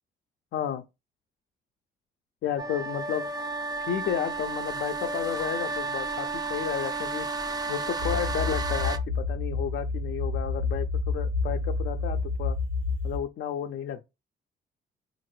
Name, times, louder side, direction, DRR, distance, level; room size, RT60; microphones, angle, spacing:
voice 1, 0.5-0.8 2.4-3.3 3.8-7.3 7.7-12.6 13.0-14.0, left 9 dB, 60° left, 0.4 m, -32 dB
sound 1, 2.6-9.0, right 3 dB, 20° right, 0.4 m, -32 dB
sound 2, 8.0-13.2, left 3 dB, 75° right, 0.8 m, -29 dB
3.6 x 2.5 x 3.1 m
cardioid pair, 90°, 20 cm